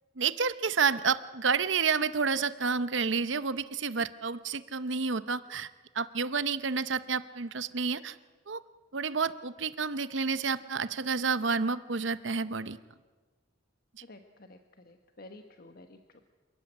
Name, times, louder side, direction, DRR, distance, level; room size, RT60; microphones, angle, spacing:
voice 1, 0.2-5.7 5.9-8.2 8.5-8.6 8.9-12.8, right 5 dB, 65° right, 14 dB, 0.8 m, -30 dB
voice 2, 14.0-16.2, left 2 dB, 50° left, 6 dB, 1.3 m, -52 dB
27.5 x 14.0 x 9.9 m, 1.3 s
head